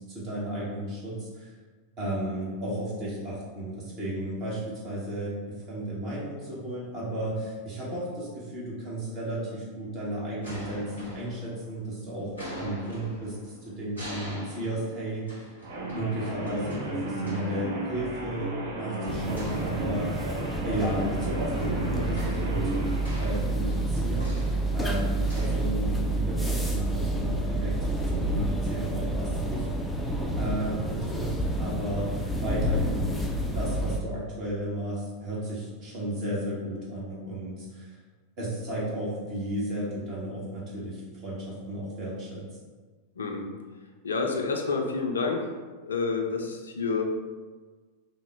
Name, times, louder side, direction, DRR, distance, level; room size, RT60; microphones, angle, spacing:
voice 1, 0.0-1.5 2.0-12.3 12.6-15.4 15.9-20.4 20.6-22.8 23.2-24.4 24.7-27.7 28.0-29.7 30.4-33.2 33.5-38.0 38.4-42.4, right 1 dB, 40° right, -6 dB, 0.9 m, -34 dB
sound 1, 10.1-11.9 12.2-17.7 19.3-20.4 20.7-25.5, equal, 80° right, 1.3 m, -44 dB
sound 2, 15.6-23.0, right 1 dB, 60° right, 0.6 m, -34 dB
sound 3, 19.1-34.0, right 1 dB, 5° left, 0.3 m, -29 dB
voice 2, 43.2-43.5 44.0-45.5 45.8-47.0, left 4 dB, 70° left, 2 dB, 0.4 m, -28 dB
3.5 x 2.1 x 3.3 m, 1.4 s
figure-of-eight pair, 90°, 0 cm